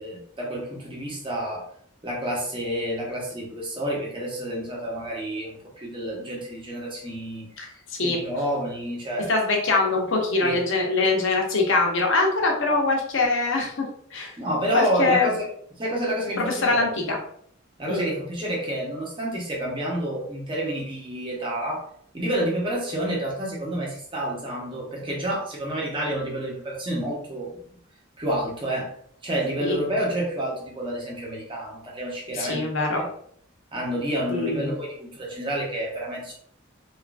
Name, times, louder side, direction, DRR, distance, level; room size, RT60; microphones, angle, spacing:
voice 1, 0.0-1.6 2.0-7.7 8.0-9.3 10.4-10.6 14.4-15.5 15.8-16.9 17.8-21.8 22.1-27.5 28.2-28.9 29.2-32.6 32.9-33.0 33.7-36.3, right 1 dB, 25° right, -3 dB, 0.8 m, -29 dB
voice 2, 7.6-8.2 9.3-13.9 14.1-14.3 14.7-15.3 16.4-17.2 17.9-18.1 29.6-29.8 32.3-33.0 34.3-34.7, left 3 dB, 65° left, 1 dB, 0.7 m, -23 dB
3.0 x 2.4 x 2.4 m, 0.63 s
head